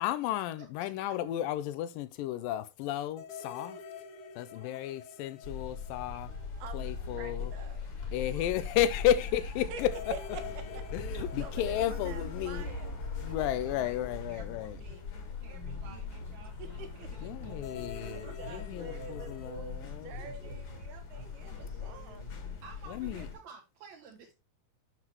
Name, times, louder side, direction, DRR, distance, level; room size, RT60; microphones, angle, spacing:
voice 1, 0.0-3.8 4.4-6.3 6.7-7.5 8.1-10.1 10.9-12.7 13.2-14.8 17.2-20.1 22.9-23.3, left 12 dB, 80° left, 2.0 m, -33 dB
voice 2, 0.6-1.2 4.5-4.8 8.3-8.5 13.2-14.0 14.3-15.0 15.4-18.5 20.0-20.5 22.2-24.3, right 5 dB, 55° right, 2.7 m, -54 dB
sound 1, 3.2-6.9 7.2-7.3 9.8-15.2 17.5-19.5, left 6 dB, 65° left, 2.2 m, -47 dB
sound 2, 5.4-23.3, left 5 dB, 45° left, 2.0 m, -40 dB
sound 3, 6.0-18.2, right 3 dB, 20° left, 1.3 m, -52 dB
voice 3, 6.6-7.9 9.1-9.2 9.7-9.8 10.1-10.8 11.2-13.0 13.7-14.0 16.4-17.3 18.1-22.3, right 6 dB, 80° right, 3.3 m, -47 dB
7.9 x 7.3 x 3.0 m
omnidirectional pair, 4.4 m